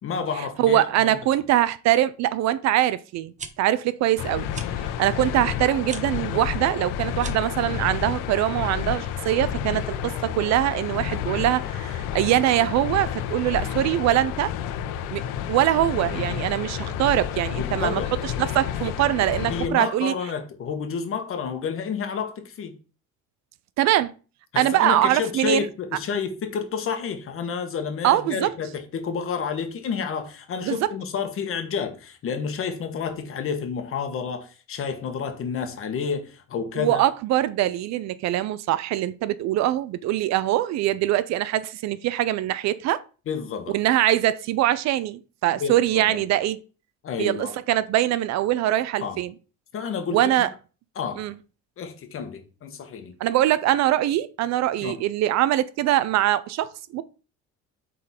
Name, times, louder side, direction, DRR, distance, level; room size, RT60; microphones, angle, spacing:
voice 1, 0.0-1.2 17.6-18.1 19.5-22.8 24.5-37.0 43.3-43.8 45.5-46.2 47.0-47.6 49.0-49.2 49.7-50.5 50.9-51.3 51.8-53.1 54.8-55.0, left 6 dB, 45° left, 1.4 m, -30 dB
voice 2, 0.6-4.5 5.0-14.5 15.1-15.2 15.5-20.1 23.8-24.1 24.6-25.7 28.0-28.5 30.6-30.9 36.8-43.0 43.7-46.6 47.2-49.3 50.1-50.5 51.2-51.3 53.2-57.0, right 13 dB, 60° right, 0.5 m, -23 dB
sound 1, 3.2-3.5 4.5-4.7 5.8-6.0 7.1-7.5, right 5 dB, 25° right, 0.8 m, -38 dB
sound 2, 4.2-19.7, left 10 dB, 85° left, 0.8 m, -30 dB
8.2 x 4.0 x 4.3 m
cardioid pair, 135°, 31 cm